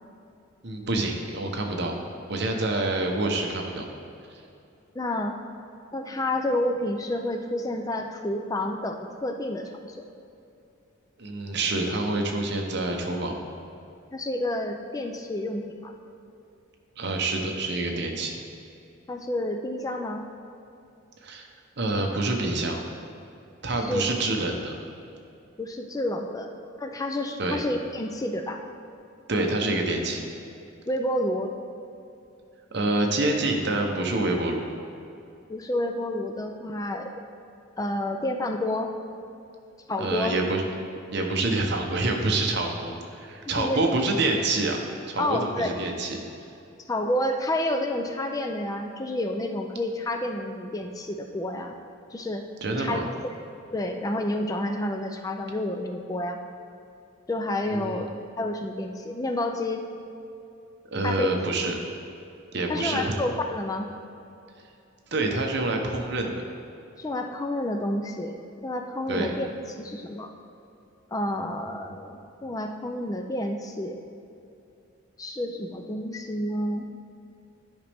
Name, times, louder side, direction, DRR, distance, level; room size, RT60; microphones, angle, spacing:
voice 1, 0.6-1.9 2.3-3.9 4.3-4.4 11.2-13.4 17.0-18.3 21.2-21.5 21.8-22.8 23.6-24.7 27.4-27.6 29.3-30.3 32.7-34.7 40.0-40.6 41.1-44.8 45.1-46.2 52.6-53.1 57.7-58.1 60.9-61.7 62.5-63.2 65.1-66.4 69.1-69.3, right 2 dB, 55° right, 2 dB, 0.8 m, -27 dB
voice 2, 5.0-5.4 5.9-10.0 14.1-16.0 19.1-20.3 23.9-24.0 25.6-26.5 26.8-28.6 30.9-31.5 35.5-37.1 37.8-38.9 39.9-40.3 43.5-43.8 45.2-45.7 46.9-51.8 52.1-53.1 53.7-56.4 57.3-58.1 58.4-59.9 61.0-61.5 62.7-63.9 67.0-68.4 68.6-69.5 69.8-70.3 71.1-74.0 75.2-76.8, left 1 dB, 15° left, 4 dB, 0.4 m, -29 dB
10.5 x 5.2 x 3.5 m, 2.6 s
head